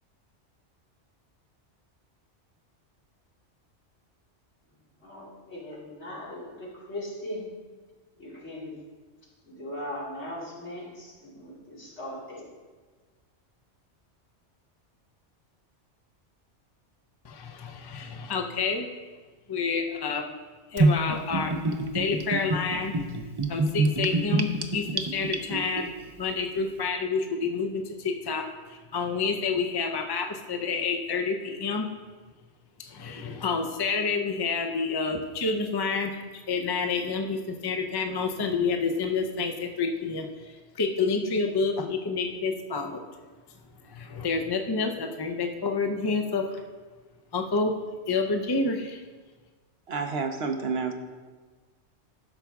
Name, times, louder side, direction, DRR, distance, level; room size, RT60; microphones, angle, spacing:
voice 1, 5.0-7.4 8.2-8.7 9.5-12.5, left 1 dB, 70° left, -7 dB, 3.0 m, -39 dB
voice 2, 17.2-18.9 19.5-20.2 20.7-21.6 21.9-22.9 23.5-25.9 26.2-31.9 32.8-36.2 36.5-43.0 43.9-46.6 47.3-47.8 48.1-49.0, left 4 dB, 30° left, 4 dB, 0.4 m, -29 dB
Gurgling / Bathtub (filling or washing), 20.8-25.8, right 2 dB, 35° right, 0.4 m, -26 dB
voice 3, 49.9-50.9, right 4 dB, 65° right, 5 dB, 0.9 m, -29 dB
13.0 x 5.9 x 3.5 m, 1.4 s
omnidirectional pair, 1.2 m